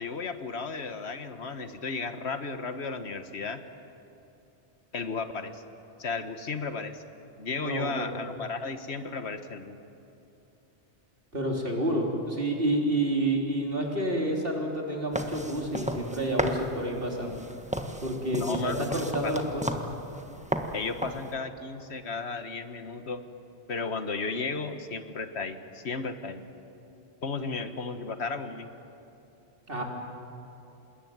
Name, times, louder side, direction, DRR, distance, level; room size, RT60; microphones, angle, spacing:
voice 1, 0.0-3.6 4.9-5.6 6.0-7.0 7.4-9.8 18.3-19.3 20.7-23.2 23.7-26.4 27.2-28.7, left 4 dB, 70° left, 9 dB, 1.6 m, -34 dB
voice 2, 7.5-8.1 11.3-17.4 18.0-19.6 27.4-27.5 29.7-29.8, right 1 dB, 55° right, 0 dB, 3.8 m, -29 dB
sound 1, 15.1-21.3, right 1 dB, 5° right, 1.4 m, -35 dB
27.0 x 20.5 x 9.4 m, 2.8 s
omnidirectional pair, 1.1 m